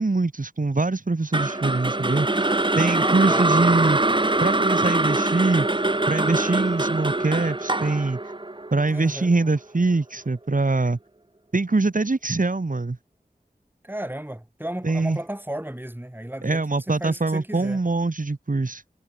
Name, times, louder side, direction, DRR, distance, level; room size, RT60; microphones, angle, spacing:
voice 1, 0.0-2.5 2.8-4.0 4.4-5.7 6.1-8.2 8.7-11.0 11.5-13.0 14.8-15.2 16.4-18.8, right 3 dB, 60° right, 3.7 m, -23 dB
sound 1, 1.3-9.5, right 2 dB, 30° right, 1.5 m, -23 dB
voice 2, 2.9-3.5 8.9-9.3 13.8-17.8, right 1 dB, 15° right, 4.3 m, -34 dB
wide cardioid pair, 65°, 16 cm